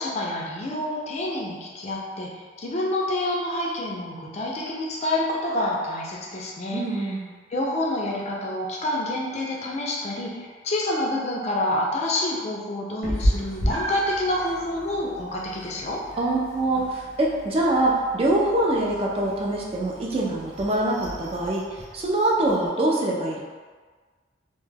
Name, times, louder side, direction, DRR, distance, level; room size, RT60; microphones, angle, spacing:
voice 1, 0.0-7.1 7.5-16.0, left 1 dB, 35° left, -3 dB, 0.4 m, -28 dB
voice 2, 6.7-7.3 16.2-21.7 21.9-23.4, right 1 dB, 30° right, -3 dB, 0.3 m, -24 dB
Meow, 13.0-22.7, equal, 65° right, 0.6 m, -33 dB
2.2 x 2.1 x 3.2 m, 1.5 s
head